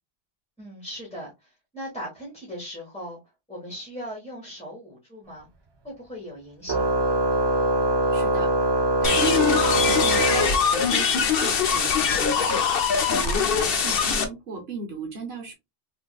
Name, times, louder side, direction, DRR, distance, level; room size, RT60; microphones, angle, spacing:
voice 1, 0.6-3.2 3.5-5.5 5.8-7.0, equal, 5° left, 1.2 m, -38 dB
Organ, 6.7-11.2, right 1 dB, 40° right, 0.4 m, -23 dB
voice 2, 8.1-8.5 9.0-12.6 13.1-15.5, right 4 dB, 75° right, 1.1 m, -35 dB
sound 1, 9.0-14.3, left 6 dB, 65° left, 0.8 m, -22 dB
3.5 x 2.6 x 2.2 m
omnidirectional pair, 1.1 m